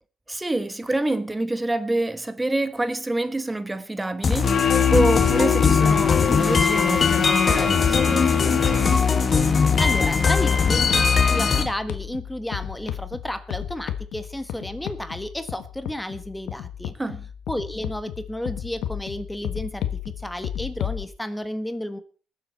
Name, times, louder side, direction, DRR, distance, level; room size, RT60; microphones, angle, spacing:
voice 1, 0.3-9.0 17.0-17.3, right 2 dB, 15° right, 1.2 m, -27 dB
sound 1, 4.2-11.6, left 5 dB, 40° left, 1.7 m, -20 dB
sound 2, 4.4-9.3, left 9 dB, 55° left, 2.2 m, -24 dB
sound 3, 5.2-21.0, left 10 dB, 85° left, 1.3 m, -34 dB
voice 2, 9.8-11.0 11.3-16.9 17.5-22.0, left 1 dB, 5° left, 1.4 m, -32 dB
20.0 x 7.9 x 4.2 m
cardioid pair, 90°, 0 cm